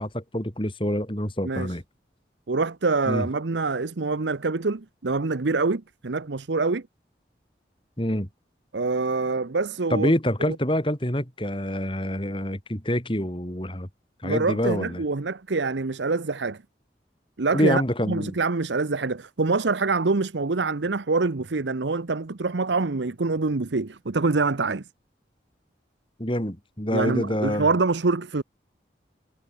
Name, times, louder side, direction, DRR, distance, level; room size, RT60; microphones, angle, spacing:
voice 1, 0.0-1.8 3.1-3.3 8.0-8.3 9.9-13.9 14.2-15.0 17.5-18.3 26.2-27.7, equal, 30° left, 4.8 m, -26 dB
voice 2, 1.4-1.7 2.5-6.8 8.7-10.1 10.5-10.6 14.2-16.6 17.4-24.9 26.9-28.4, right 3 dB, 90° right, 0.9 m, -25 dB
head